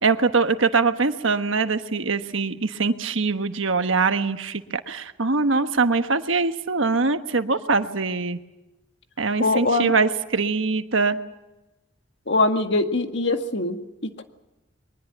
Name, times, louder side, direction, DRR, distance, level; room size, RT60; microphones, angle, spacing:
voice 1, 0.0-8.4 9.2-11.2, right 4 dB, 90° right, 9 dB, 1.3 m, -23 dB
voice 2, 9.4-9.9 12.3-13.8 14.2-14.3, left 2 dB, 60° left, 6 dB, 1.9 m, -22 dB
22.5 x 20.0 x 8.0 m, 1.0 s
head